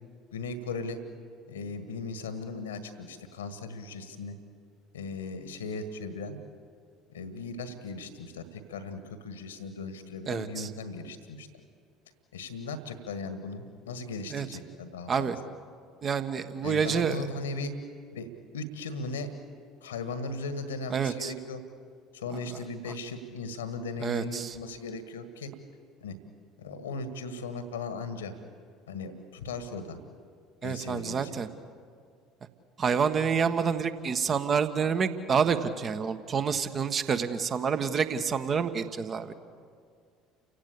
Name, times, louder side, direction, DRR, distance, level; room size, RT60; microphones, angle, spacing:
voice 1, 0.3-1.0 1.5-4.3 4.9-6.4 7.1-11.5 12.3-15.3 16.6-17.7 18.1-18.3 18.5-19.3 19.8-21.6 22.1-25.5 26.0-26.2 26.6-28.3 28.9-30.0 30.6-31.4, left 3 dB, 75° left, 10 dB, 1.7 m, -37 dB
voice 2, 10.3-10.7 14.3-14.5 15.1-15.4 16.0-17.2 20.9-21.3 24.0-24.5 30.6-31.5 32.8-39.3, right 6 dB, 35° right, 10 dB, 1.4 m, -28 dB
29.5 x 16.5 x 8.5 m, 2.1 s
figure-of-eight pair, 60°, 0 cm